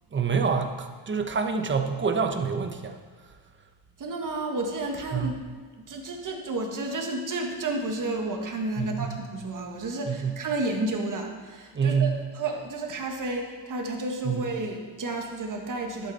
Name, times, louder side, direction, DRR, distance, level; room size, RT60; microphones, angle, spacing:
voice 1, 0.1-2.9 5.1-5.3 8.8-9.2 10.1-10.4 11.7-12.1 14.2-14.4, right 5 dB, 25° right, 4 dB, 1.0 m, -26 dB
voice 2, 4.0-5.4 5.8-16.1, right 2 dB, 45° right, 2 dB, 1.7 m, -31 dB
12.0 x 8.5 x 4.2 m, 1.5 s
cardioid pair, 120°, 44 cm